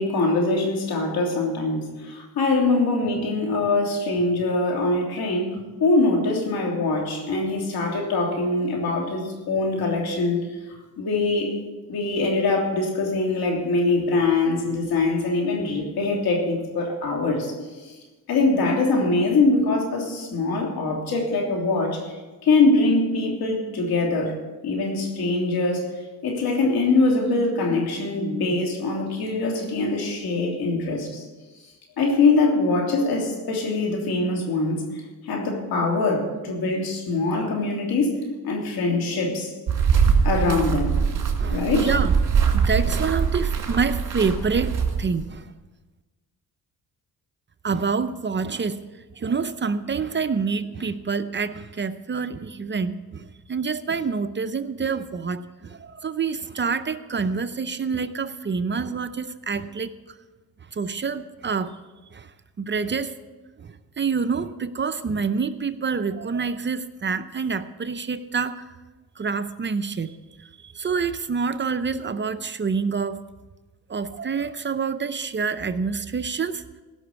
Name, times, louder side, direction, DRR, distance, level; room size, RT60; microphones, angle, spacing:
voice 1, 0.0-10.4 11.0-11.5 11.9-17.5 17.8-17.9 18.3-24.4 24.6-25.9 26.2-31.2 32.0-34.8 35.2-38.2 38.4-39.5 40.2-41.0 41.5-41.9, left 3 dB, 80° left, 0 dB, 3.2 m, -23 dB
sound 1, 39.7-45.2, right 6 dB, 55° right, 2.5 m, -22 dB
voice 2, 41.4-45.5 47.6-48.8 49.2-60.0 60.7-61.8 62.1-62.3 62.6-63.2 63.6-68.7 69.2-73.2 73.9-76.6, right 5 dB, 30° right, 11 dB, 0.6 m, -27 dB
16.5 x 6.1 x 8.2 m, 1.2 s
cardioid pair, 85°, 36 cm